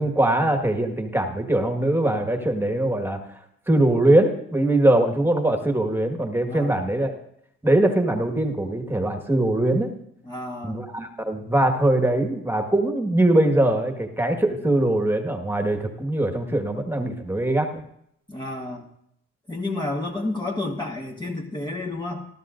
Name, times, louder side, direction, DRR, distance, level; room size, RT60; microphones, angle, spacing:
voice 1, 0.0-3.2 3.7-7.2 7.6-9.9 10.6-17.8, right 1 dB, 5° right, 4 dB, 1.6 m, -22 dB
voice 2, 10.2-10.8 18.3-18.9 19.5-22.2, left 2 dB, 15° left, 0 dB, 1.3 m, -30 dB
20.0 x 12.5 x 2.6 m, 0.74 s
cardioid pair, 90°, 30 cm